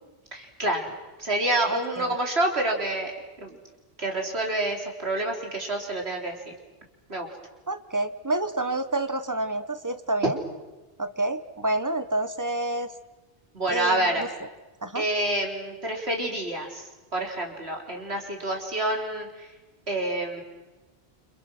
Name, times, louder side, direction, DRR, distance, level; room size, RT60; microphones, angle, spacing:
voice 1, 0.3-0.9 1.2-3.1 3.4-3.6 4.0-6.6 7.1-7.3 13.5-14.2 14.9-19.5 19.9-20.4, right 1 dB, 75° right, 1 dB, 4.2 m, -28 dB
voice 2, 1.7-2.1 7.7-10.4 11.0-12.9 13.7-14.3 14.8-15.0, right 2 dB, 15° right, 10 dB, 1.4 m, -28 dB
29.5 x 27.0 x 6.3 m, 1.2 s
omnidirectional pair, 1.1 m